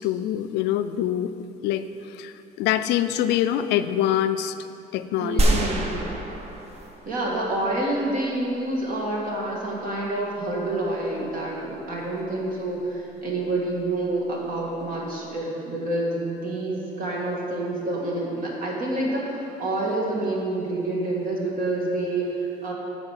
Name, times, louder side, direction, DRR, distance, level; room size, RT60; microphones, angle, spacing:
voice 1, 0.0-1.3 1.6-4.6 4.9-5.6, left 11 dB, 85° left, 11 dB, 0.5 m, -25 dB
voice 2, 5.2-6.0 7.0-22.7, right 2 dB, 55° right, -3 dB, 1.8 m, -28 dB
sound 1, 5.4-7.7, right 1 dB, 40° right, 1.1 m, -25 dB
9.0 x 5.0 x 7.3 m, 2.9 s
cardioid pair, 110°, 17 cm